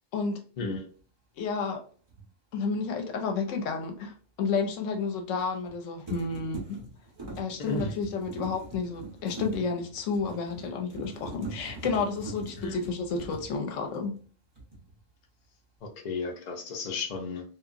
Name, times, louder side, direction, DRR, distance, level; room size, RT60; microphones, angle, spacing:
voice 1, 1.4-1.8 2.5-6.8 7.4-14.2, left 4 dB, 80° left, 0.9 m, -31 dB
sound 1, 2.1-2.3 5.4-5.8 6.1-14.3 14.6-15.0, right 2 dB, 25° right, 0.7 m, -42 dB
voice 2, 7.6-7.9 12.6-12.8 15.8-17.4, left 3 dB, 50° left, 0.5 m, -34 dB
2.8 x 2.4 x 2.5 m
omnidirectional pair, 1.3 m